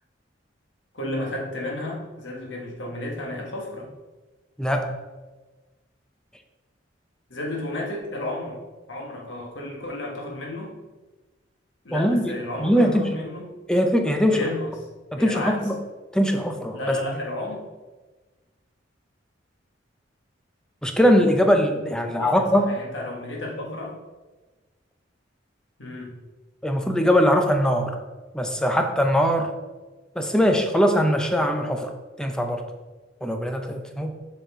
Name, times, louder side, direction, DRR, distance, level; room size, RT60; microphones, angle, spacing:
voice 1, 0.9-3.9 7.3-8.6 8.9-10.7 11.8-13.5 14.2-14.7 15.2-15.7 16.7-17.7 22.0-24.0 25.8-26.1, left 1 dB, 75° left, 0 dB, 1.5 m, -32 dB
voice 2, 4.6-4.9 11.9-12.3 12.6-13.1 13.7-14.4 15.1-15.8 16.1-17.0 20.8-22.8 26.6-28.0 28.3-29.5 30.2-31.9 32.2-32.6 33.2-34.1, equal, 5° left, 4 dB, 0.6 m, -21 dB
7.1 x 5.2 x 3.7 m, 1.2 s
head